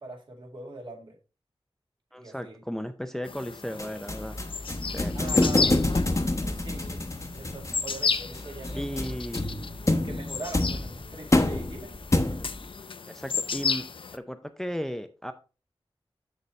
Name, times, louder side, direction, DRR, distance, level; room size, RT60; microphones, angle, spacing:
voice 1, 0.0-1.2 2.2-2.6 5.1-5.7 6.4-7.1 7.3-8.8 9.9-11.9, right 2 dB, 55° right, 0 dB, 2.1 m, -42 dB
voice 2, 2.1-4.4 4.9-5.8 8.7-9.7 13.1-13.9 14.1-15.3, equal, 5° left, 9 dB, 0.5 m, -35 dB
sound 1, 3.2-14.2, left 5 dB, 65° left, 0.5 m, -34 dB
sound 2, 3.8-12.7, left 2 dB, 30° left, 0.9 m, -28 dB
6.9 x 6.7 x 3.1 m, 0.33 s
wide cardioid pair, 90°, 10 cm